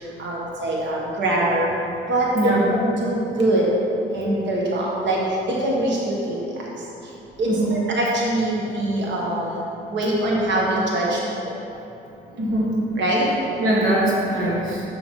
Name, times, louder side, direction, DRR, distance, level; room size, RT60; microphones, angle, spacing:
voice 1, 0.2-1.7 2.1-3.6 4.1-5.2 5.5-6.4 7.4-9.6 9.9-11.2 11.4-11.5 13.0-13.3, right 1 dB, 65° right, -4 dB, 1.4 m, -23 dB
voice 2, 12.3-12.7 13.6-14.8, right 1 dB, 85° right, -5 dB, 1.4 m, -22 dB
7.0 x 7.0 x 3.6 m, 2.9 s
cardioid pair, 90°, 20 cm